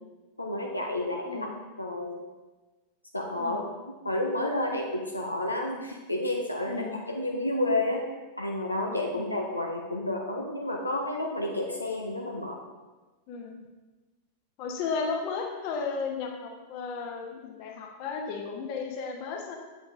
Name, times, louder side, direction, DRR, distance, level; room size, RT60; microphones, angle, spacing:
voice 1, 0.4-1.5 1.8-2.1 3.1-3.6 4.0-8.0 8.4-12.6, left 1 dB, 85° left, 0 dB, 0.6 m, -30 dB
voice 2, 6.7-7.0 9.1-9.4 13.3-13.5 14.6-19.6, left 5 dB, 45° left, 2 dB, 1.0 m, -34 dB
8.0 x 5.1 x 2.6 m, 1.2 s
figure-of-eight pair, 90°, 0 cm